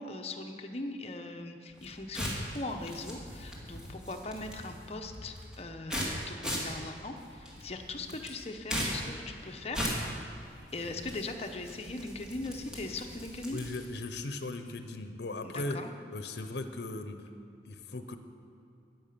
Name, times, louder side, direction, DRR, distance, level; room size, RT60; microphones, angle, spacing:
voice 1, 0.0-9.9 10.2-10.3 10.7-13.6 15.4-15.9, left 2 dB, 35° left, 4 dB, 0.9 m, -40 dB
sound 1, 1.7-14.0, equal, 5° right, 2.1 m, -39 dB
voice 2, 13.5-15.8 16.1-17.3 17.6-18.2, left 2 dB, 70° left, 8 dB, 0.7 m, -38 dB
10.5 x 9.5 x 6.8 m, 2.8 s
head